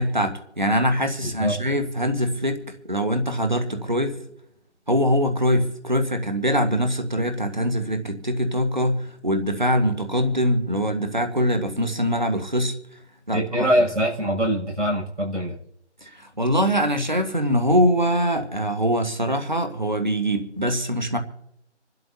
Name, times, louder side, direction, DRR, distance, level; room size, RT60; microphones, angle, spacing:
voice 1, 0.0-4.2 4.9-12.7 13.3-13.7 16.0-21.2, equal, 40° right, 1.5 m, -23 dB
voice 2, 1.2-1.6 13.3-15.6, equal, 85° right, 7.2 m, -23 dB
27.0 x 12.5 x 2.8 m
figure-of-eight pair, 175°, 35 cm